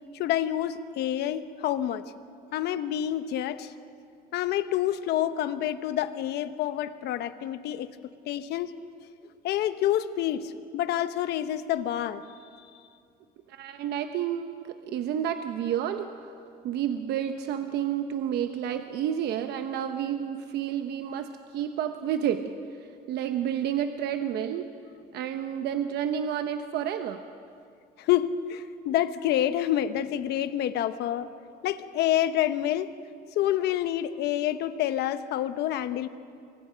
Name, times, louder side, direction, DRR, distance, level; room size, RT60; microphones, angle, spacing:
voice 1, 0.1-2.0 2.5-3.7 4.3-7.9 8.3-8.7 9.4-12.2 28.0-31.3 31.6-32.9 33.4-36.1, left 12 dB, 80° left, 11 dB, 1.0 m, -28 dB
voice 2, 13.5-16.1 16.6-22.5 23.1-24.7 25.1-27.2, right 9 dB, 75° right, 7 dB, 1.0 m, -30 dB
28.5 x 23.5 x 5.2 m, 2.4 s
cardioid pair, 110°, 17 cm